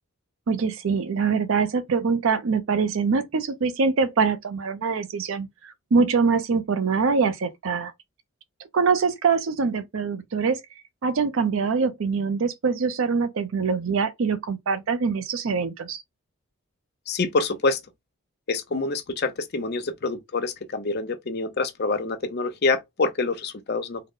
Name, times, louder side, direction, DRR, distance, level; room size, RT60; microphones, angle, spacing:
voice 1, 0.5-7.9 8.7-10.6 11.0-16.0, right 5 dB, 65° right, 0.5 m, -24 dB
voice 2, 17.1-17.8 18.5-24.0, left 3 dB, 45° left, 0.6 m, -26 dB
3.7 x 2.0 x 3.6 m
head